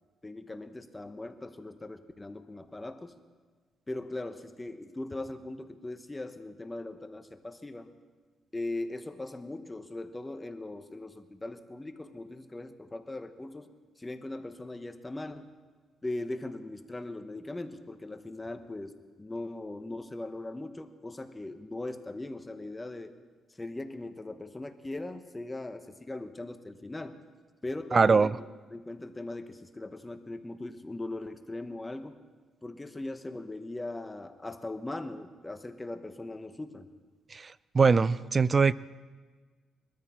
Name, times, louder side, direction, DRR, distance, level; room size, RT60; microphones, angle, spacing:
voice 1, 0.2-3.2 3.9-7.9 8.5-13.7 14.0-15.5 16.0-23.1 23.6-27.2 27.6-28.4 28.7-32.2 32.6-36.9, left 2 dB, 15° left, 8 dB, 1.0 m, -39 dB
voice 2, 27.9-28.3 37.3-38.7, right 5 dB, 35° right, 19 dB, 0.4 m, -22 dB
22.0 x 13.5 x 4.4 m, 1.4 s
cardioid pair, 90°, 0 cm